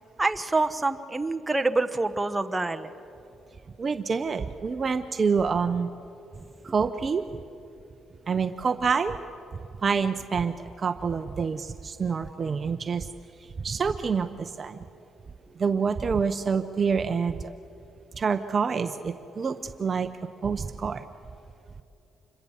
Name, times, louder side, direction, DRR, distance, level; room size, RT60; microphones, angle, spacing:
voice 1, 0.2-2.9, right 2 dB, 15° right, 7 dB, 1.0 m, -26 dB
voice 2, 3.8-5.9 6.6-7.2 8.3-9.2 9.8-13.1 13.6-14.8 15.6-17.4 18.1-20.1 20.4-21.0, right 5 dB, 40° right, 10 dB, 0.7 m, -27 dB
27.0 x 22.0 x 7.2 m, 2.7 s
cardioid pair, 90°, 0 cm